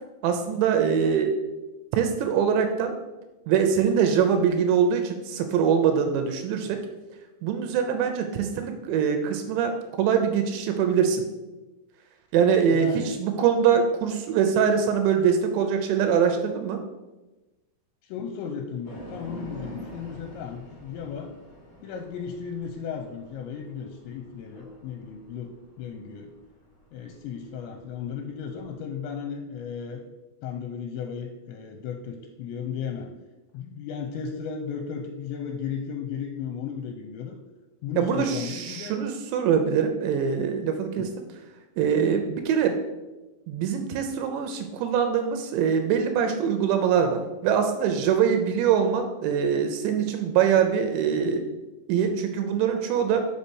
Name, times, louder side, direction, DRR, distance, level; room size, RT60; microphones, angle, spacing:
voice 1, 0.2-1.3 1.9-2.9 3.5-6.8 7.4-11.2 12.3-16.8 38.0-41.1 41.8-42.8 43.5-51.4 51.9-53.2, right 7 dB, 80° right, 6 dB, 2.8 m, -23 dB
voice 2, 12.7-13.2 18.0-21.3 21.8-26.3 26.9-30.0 30.4-33.1 33.5-37.4 37.8-39.0 41.0-41.1, left 7 dB, 80° left, 4 dB, 2.8 m, -35 dB
sound 1, 18.8-28.7, equal, 40° left, 1.2 m, -46 dB
6.5 x 5.6 x 6.2 m, 1.1 s
omnidirectional pair, 5.3 m